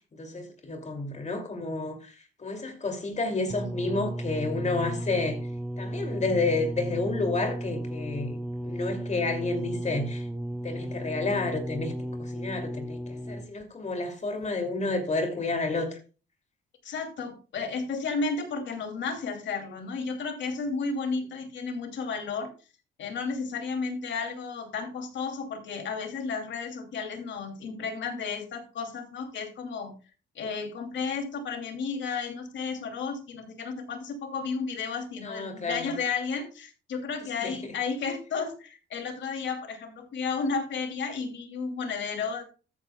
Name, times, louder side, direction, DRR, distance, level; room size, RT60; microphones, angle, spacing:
voice 1, 0.1-5.4 5.8-8.4 8.6-10.3 10.6-16.0 35.2-35.9 37.4-37.5, left 3 dB, 35° left, 2.7 m, -30 dB
sound 1, 3.5-13.6 14.4-14.5, right 1 dB, ahead, 0.7 m, -34 dB
voice 2, 16.8-22.5 23.0-29.9 30.3-42.4, left 5 dB, 65° left, 2.8 m, -33 dB
13.5 x 9.1 x 2.3 m
cardioid pair, 90°, 20 cm